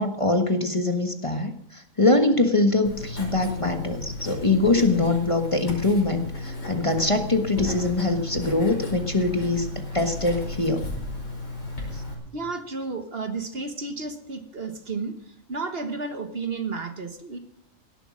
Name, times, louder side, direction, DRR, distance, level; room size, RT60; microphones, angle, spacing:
voice 1, 0.0-10.8 11.9-12.0, left 2 dB, 25° left, 6 dB, 1.4 m, -23 dB
Writing, 2.8-12.1, left 2 dB, 50° left, 5.7 m, -34 dB
voice 2, 12.3-17.4, right 4 dB, 45° right, 8 dB, 1.4 m, -32 dB
17.5 x 11.5 x 6.2 m, 0.71 s
omnidirectional pair, 1.4 m